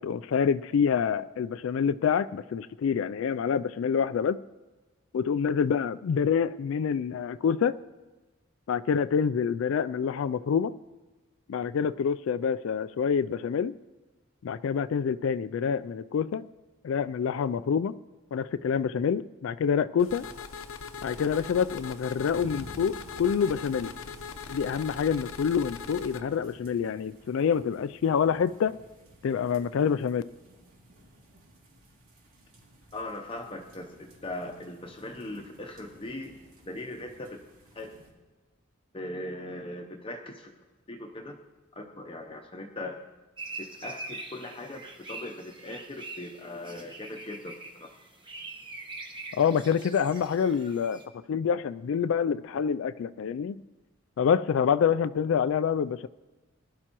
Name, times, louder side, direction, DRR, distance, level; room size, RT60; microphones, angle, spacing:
voice 1, 0.0-4.4 5.1-7.8 8.7-10.7 11.5-13.7 14.4-16.4 16.8-17.9 18.3-20.3 21.0-23.9 24.5-28.8 29.2-30.2 49.3-51.0 51.3-53.6 54.2-56.1, left 7 dB, 65° left, 14 dB, 0.3 m, -27 dB
sound 1, 20.0-26.2, left 5 dB, 80° left, 0.8 m, -41 dB
sound 2, 22.3-38.1, equal, 90° right, 2.7 m, -54 dB
voice 2, 32.9-36.3 36.7-37.4 37.7-37.9 38.9-40.5 40.9-41.4 41.8-43.0 43.6-44.8 45.1-47.9, left 1 dB, 25° left, 2 dB, 0.7 m, -39 dB
sound 3, 43.4-51.0, right 2 dB, 25° right, 1.1 m, -43 dB
20.5 x 11.0 x 3.0 m, 1.2 s
head